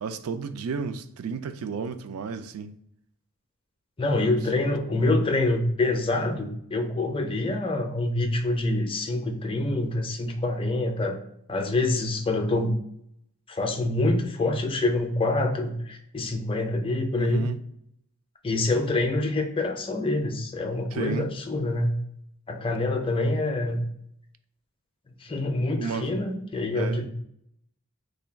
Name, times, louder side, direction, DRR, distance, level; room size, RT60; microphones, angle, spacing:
voice 1, 0.0-2.7 4.2-4.3 4.6-4.7 17.1-17.6 20.9-21.3 25.8-26.1 26.7-27.1, right 5 dB, 75° right, 0.3 m, -33 dB
voice 2, 4.0-11.2 11.5-12.7 13.5-17.4 18.4-22.0 22.5-23.8 25.2-27.1, left 2 dB, 25° left, 0.5 m, -26 dB
3.3 x 2.2 x 4.3 m
head